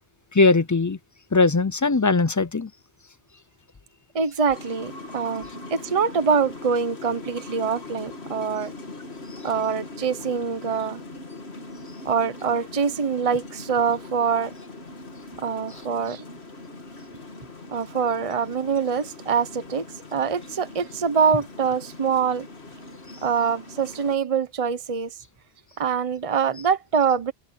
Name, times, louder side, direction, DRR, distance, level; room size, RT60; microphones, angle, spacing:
voice 1, 0.3-1.0 1.3-2.7 9.3-9.4, left 3 dB, 25° left, 0.4 m, -20 dB
voice 2, 4.1-8.7 9.4-11.0 12.0-14.5 15.4-16.2 17.7-19.9 20.1-22.5 23.2-25.1 25.8-27.3, right 6 dB, 35° right, 1.0 m, -24 dB
sound 1, 4.5-24.2, left 2 dB, 80° left, 2.6 m, -41 dB
omnidirectional pair, 1.1 m